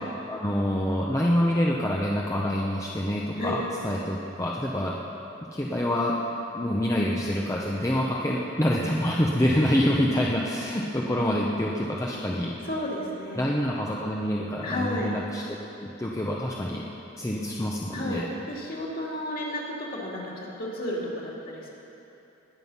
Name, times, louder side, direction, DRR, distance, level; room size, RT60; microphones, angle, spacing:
voice 1, 0.3-5.0 5.5-6.2 6.5-12.5 13.4-15.4 15.8-16.8 17.2-18.3, equal, 15° left, -3 dB, 0.7 m, -26 dB
voice 2, 12.6-13.4 14.6-15.1 17.9-21.7, left 1 dB, 45° left, -3 dB, 2.5 m, -32 dB
20.5 x 7.7 x 5.5 m, 2.9 s
head